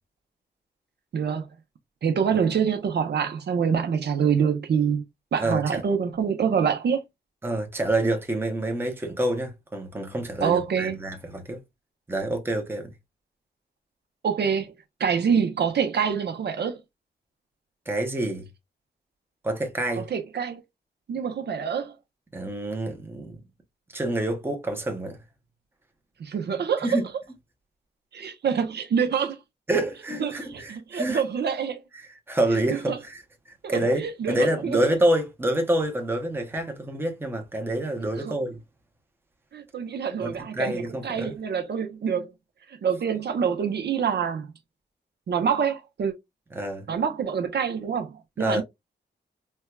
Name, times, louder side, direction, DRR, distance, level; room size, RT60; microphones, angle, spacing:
voice 1, 1.1-1.5 2.0-5.0 5.3-7.0 10.4-11.0 14.2-14.7 15.0-16.8 20.0-20.6 21.1-21.9 26.2-27.0 28.1-29.4 30.2-31.8 32.7-33.0 33.6-34.5 38.2-38.3 39.5-42.3 42.7-44.5 45.3-46.1 46.9-48.6, right 7 dB, 65° right, 0.7 m, -26 dB
voice 2, 5.4-5.8 7.4-11.6 12.1-12.9 17.9-18.5 19.4-20.1 22.3-23.4 23.9-25.2 26.8-27.1 29.7-31.2 31.9-38.6 40.2-41.4 46.5-46.9 48.4-48.6, right 1 dB, 10° right, 0.7 m, -27 dB
4.4 x 2.2 x 2.3 m
wide cardioid pair, 130°, 19 cm